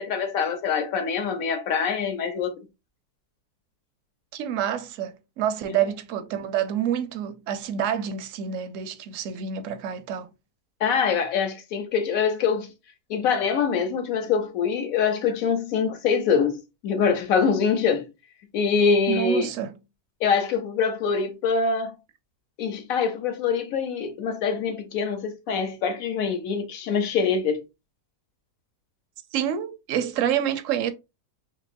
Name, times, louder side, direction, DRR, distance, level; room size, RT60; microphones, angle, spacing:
voice 1, 0.0-2.7 5.7-5.8 10.8-12.7 13.1-18.1 18.5-19.5 20.2-22.0 22.6-27.6, left 6 dB, 65° left, 1.1 m, -24 dB
voice 2, 4.3-10.3 19.1-19.8 29.3-30.9, right 9 dB, 65° right, 0.8 m, -28 dB
5.3 x 2.9 x 2.5 m
omnidirectional pair, 1.7 m